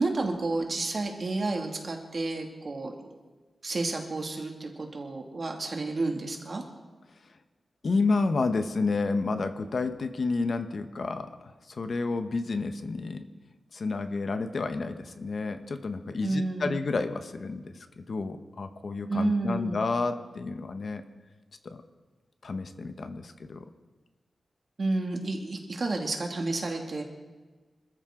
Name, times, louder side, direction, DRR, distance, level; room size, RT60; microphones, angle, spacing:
voice 1, 0.0-2.9 3.6-6.6 16.2-16.7 19.1-19.8 24.8-27.0, right 2 dB, 45° right, 2 dB, 2.3 m, -30 dB
voice 2, 7.8-13.2 13.7-21.0 21.6-21.8 22.4-23.7, left 3 dB, 55° left, 8 dB, 1.0 m, -30 dB
26.0 x 13.5 x 3.8 m, 1.3 s
wide cardioid pair, 145°, 0 cm